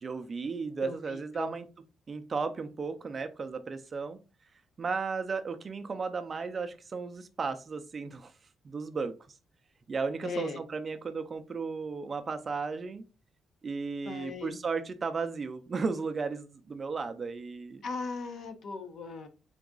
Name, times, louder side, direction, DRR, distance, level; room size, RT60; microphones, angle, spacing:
voice 1, 0.0-1.7 2.1-4.2 4.8-8.3 8.6-9.1 9.9-13.0 13.6-17.8, right 4 dB, 30° right, 9 dB, 0.4 m, -34 dB
voice 2, 0.8-1.5 10.2-10.6 14.0-14.5 17.8-19.3, left 4 dB, 55° left, 8 dB, 0.7 m, -38 dB
3.9 x 3.5 x 3.7 m, 0.32 s
cardioid pair, 160°, 0 cm